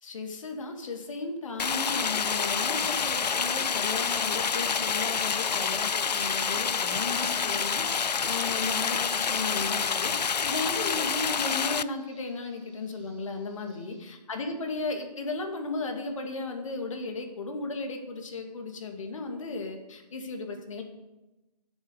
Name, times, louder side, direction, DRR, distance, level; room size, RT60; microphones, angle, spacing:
voice 1, 0.0-20.8, left 3 dB, 50° left, 4 dB, 2.2 m, -35 dB
Stream, 1.6-11.8, left 6 dB, 80° left, 0.5 m, -28 dB
Bird vocalization bird call bird song, 5.2-14.0, right 3 dB, 20° right, 3.5 m, -57 dB
10.0 x 7.4 x 7.9 m, 1.0 s
figure-of-eight pair, 150°, 21 cm